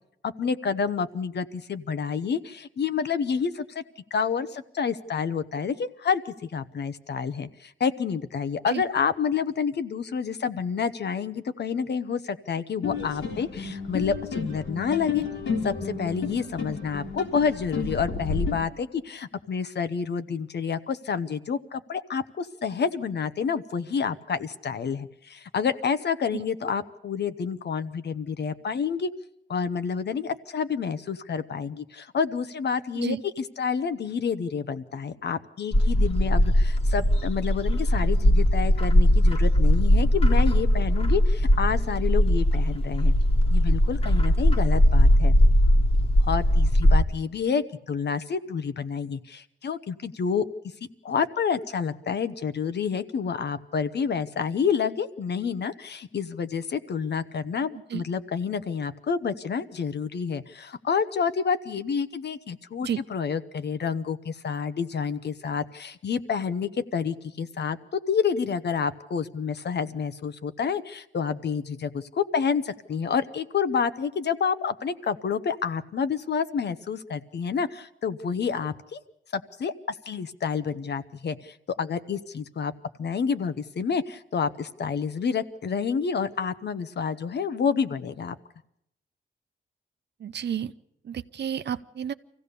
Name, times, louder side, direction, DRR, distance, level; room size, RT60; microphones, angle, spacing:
voice 1, 0.2-3.8 4.1-15.2 15.6-29.1 29.5-43.1 43.5-45.3 46.2-50.5 51.0-79.0 79.3-79.7 80.1-82.7 83.0-88.3, left 6 dB, 60° left, 12 dB, 1.0 m, -29 dB
sound 1, 12.8-18.5, left 5 dB, 80° left, 3.6 m, -31 dB
Bird, 35.7-47.0, equal, 30° left, 1.6 m, -20 dB
voice 2, 90.2-90.7 91.0-92.1, right 8 dB, 60° right, 13 dB, 0.7 m, -31 dB
24.0 x 16.0 x 6.8 m, 0.76 s
cardioid pair, 95°, 20 cm